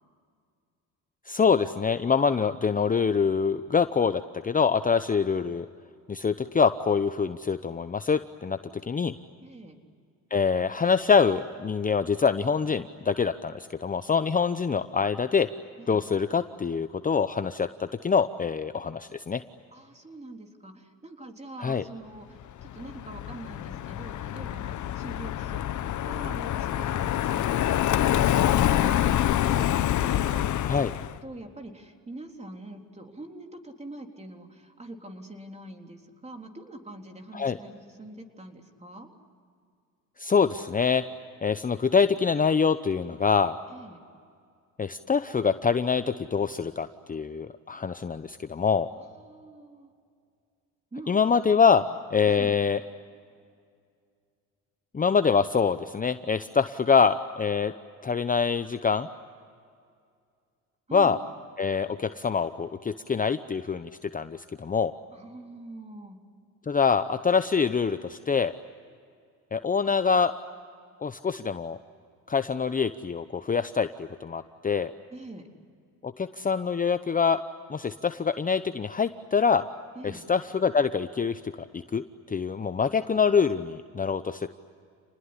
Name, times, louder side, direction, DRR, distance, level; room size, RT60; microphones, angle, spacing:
voice 1, 1.3-5.7 6.1-8.6 8.9-9.1 10.3-15.5 15.9-19.4 21.6-21.8 30.7-30.9 37.3-37.6 40.2-41.0 41.4-43.6 44.8-48.9 51.1-51.8 52.1-52.8 54.9-57.7 58.0-59.1 60.9-61.2 61.6-64.9 66.7-68.5 69.5-70.3 71.0-71.8 72.3-74.9 76.0-77.4 77.7-79.6 80.0-82.0 82.3-84.5, left 6 dB, 25° left, 11 dB, 0.8 m, -25 dB
voice 2, 9.4-9.8 15.8-16.0 19.7-39.1 43.7-44.0 48.9-49.9 50.9-51.1 51.8-52.5 60.9-61.2 65.1-66.2 75.1-75.5 79.9-80.3, right 1 dB, 20° right, 4 dB, 3.8 m, -44 dB
Car passing by, 22.6-31.2, left 12 dB, 55° left, 1.0 m, -26 dB
29.0 x 20.0 x 9.9 m, 2.2 s
supercardioid pair, 80°, 34 cm